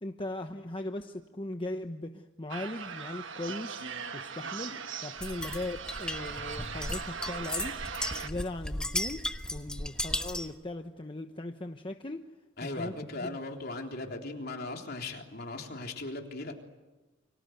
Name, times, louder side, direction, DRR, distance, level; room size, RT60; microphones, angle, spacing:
voice 1, 0.0-3.8 4.1-4.8 5.0-7.7 8.2-9.2 9.5-12.2 12.8-13.4, left 1 dB, 25° left, 5 dB, 1.0 m, -38 dB
sound 1, 2.5-8.3, right 6 dB, 65° right, 1.4 m, -39 dB
sound 2, 5.2-10.6, left 1 dB, 5° left, 1.2 m, -36 dB
voice 2, 12.6-16.5, left 2 dB, 50° left, 2 dB, 3.6 m, -38 dB
29.0 x 25.0 x 8.0 m, 1.1 s
head